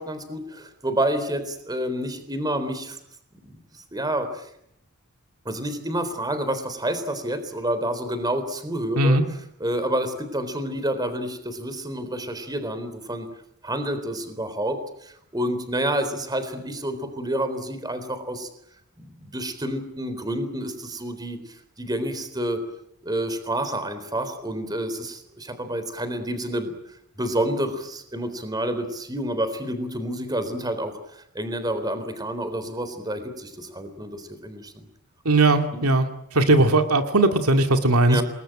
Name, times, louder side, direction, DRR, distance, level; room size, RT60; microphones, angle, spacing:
voice 1, 0.0-3.0 3.4-4.5 5.5-9.2 9.6-13.3 13.6-18.5 19.0-22.6 23.0-26.8 27.2-34.9 35.7-35.9 38.1-38.2, right 1 dB, 20° right, 10 dB, 3.8 m, -29 dB
voice 2, 35.2-36.1 36.3-38.2, right 2 dB, 80° right, 6 dB, 2.4 m, -18 dB
27.5 x 20.5 x 9.0 m, 0.74 s
head